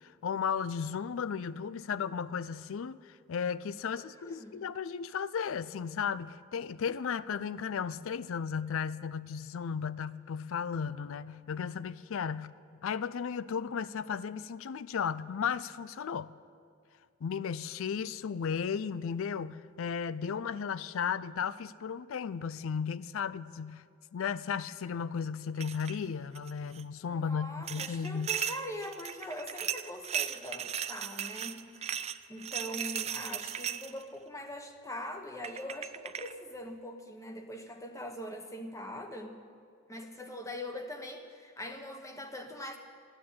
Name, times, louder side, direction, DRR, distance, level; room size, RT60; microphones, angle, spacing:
voice 1, 0.0-12.5 12.8-16.3 17.2-23.8 24.1-28.3, left 6 dB, 65° left, 0.4 m, -35 dB
voice 2, 4.2-4.6 27.1-32.0 32.3-39.4 39.9-42.8, left 1 dB, 15° left, 1.2 m, -42 dB
sound 1, 25.6-26.0 26.3-26.8 27.7-34.0 35.0-35.1 35.4-36.3, right 9 dB, 30° right, 0.4 m, -37 dB
14.5 x 9.9 x 8.5 m
head